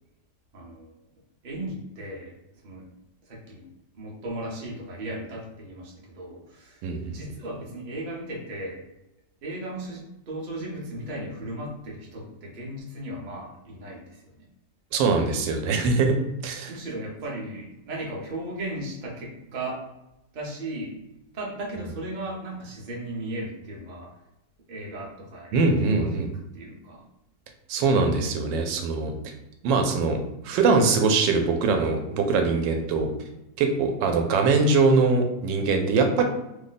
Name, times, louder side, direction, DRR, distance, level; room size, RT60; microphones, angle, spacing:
voice 1, 0.5-0.9 1.4-2.3 2.6-2.9 3.2-3.7 3.9-8.8 9.4-14.5 16.7-19.8 20.3-21.0 21.3-24.1 24.7-26.2 26.5-27.0, right 1 dB, 45° right, -3 dB, 0.6 m, -36 dB
voice 2, 6.8-7.2 14.9-16.2 16.4-16.7 25.5-26.3 27.7-29.1 29.6-30.2 30.4-33.1 33.6-36.2, right 4 dB, 85° right, 4 dB, 1.3 m, -22 dB
3.0 x 2.2 x 3.9 m, 0.93 s
omnidirectional pair, 1.9 m